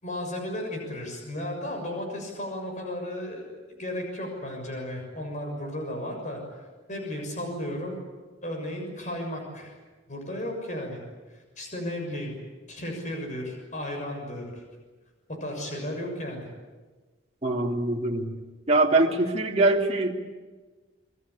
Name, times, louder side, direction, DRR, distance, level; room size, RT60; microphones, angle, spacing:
voice 1, 0.0-6.4 6.9-8.0 8.4-9.8 10.1-11.0 11.3-12.3 12.7-14.6 15.4-16.5, left 1 dB, 40° left, 2 dB, 6.7 m, -34 dB
voice 2, 17.4-18.3 18.7-20.1, right 2 dB, 35° right, 0 dB, 2.9 m, -23 dB
27.5 x 22.5 x 8.4 m, 1.3 s
head